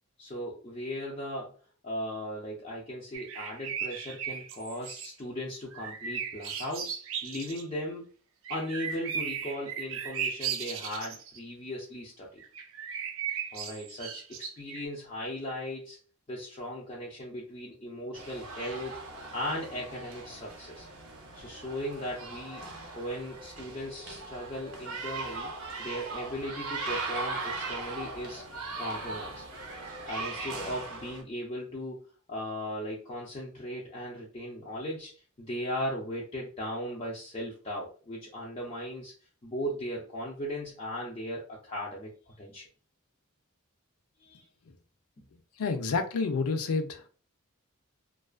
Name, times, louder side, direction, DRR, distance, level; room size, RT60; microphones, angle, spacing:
voice 1, 0.2-1.5 1.8-6.9 7.2-8.0 8.5-12.4 13.5-16.0 16.3-19.0 19.3-20.9 21.3-22.6 22.9-25.5 25.8-28.4 28.7-29.4 30.1-32.0 32.3-39.1 39.4-42.6 44.2-44.4 45.2-45.3, equal, 25° left, 0.5 m, -37 dB
sound 1, 3.1-5.1 5.7-7.6 8.4-11.4 12.4-14.9, right 7 dB, 65° right, 0.4 m, -36 dB
sound 2, 18.1-31.2, right 3 dB, 85° right, 0.7 m, -39 dB
voice 2, 45.6-47.0, left 4 dB, 80° left, 0.4 m, -29 dB
2.3 x 2.3 x 2.3 m
head